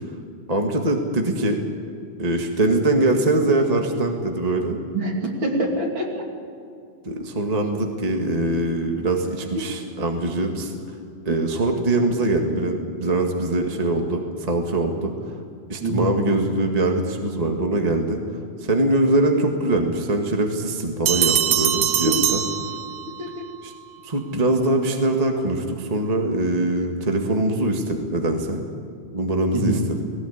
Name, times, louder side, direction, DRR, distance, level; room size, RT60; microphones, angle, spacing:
voice 1, 0.5-1.6 2.2-4.8 7.0-10.7 11.2-15.3 15.7-18.2 18.6-22.4 23.6-23.7 24.0-28.6 29.1-30.0, right 2 dB, 20° right, 3 dB, 1.0 m, -22 dB
voice 2, 4.9-6.2 15.8-16.1 22.0-22.1 23.2-23.5 29.5-29.8, right 1 dB, 40° right, 1 dB, 3.3 m, -25 dB
sound 1, 21.1-23.3, right 10 dB, 80° right, 1.1 m, -22 dB
19.0 x 18.5 x 8.7 m, 2.4 s
omnidirectional pair, 3.6 m